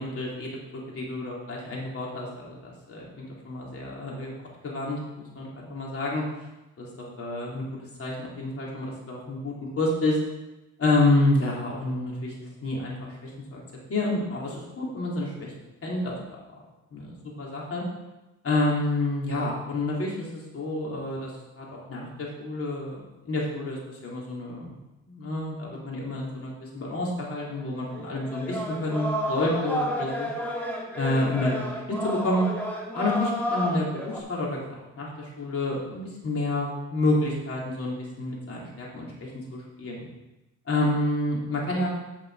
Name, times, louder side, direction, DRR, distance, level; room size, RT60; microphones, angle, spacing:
voice 1, 0.0-4.3 4.6-6.2 6.8-7.6 8.0-10.2 10.8-13.6 13.9-15.5 15.8-16.1 16.9-17.8 18.4-21.3 21.6-23.0 23.2-24.8 25.0-30.3 30.9-31.6 31.9-32.5 32.9-34.6 35.0-40.1 40.7-41.9, left 2 dB, 50° left, -3 dB, 3.3 m, -29 dB
sound 1, 27.6-27.7 27.9-34.2, left 1 dB, 5° left, 2.0 m, -31 dB
9.0 x 6.5 x 4.9 m, 1.0 s
cardioid pair, 90°, 30 cm